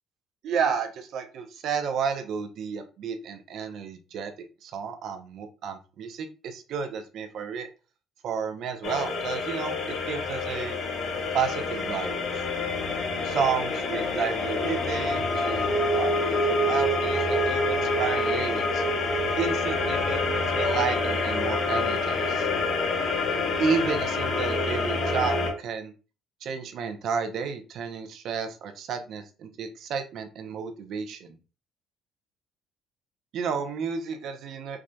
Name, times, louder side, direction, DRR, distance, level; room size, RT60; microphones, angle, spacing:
voice 1, 0.4-4.3 4.6-7.7 8.2-9.8 10.1-10.8 11.3-12.2 13.2-15.7 15.9-18.8 19.4-22.5 23.6-25.9 26.4-31.4 33.3-34.8, right 6 dB, 65° right, 6 dB, 0.7 m, -31 dB
sound 1, 8.8-25.5, left 2 dB, 60° left, 1.0 m, -27 dB
4.7 x 2.6 x 2.3 m, 0.34 s
cardioid pair, 90°, 0 cm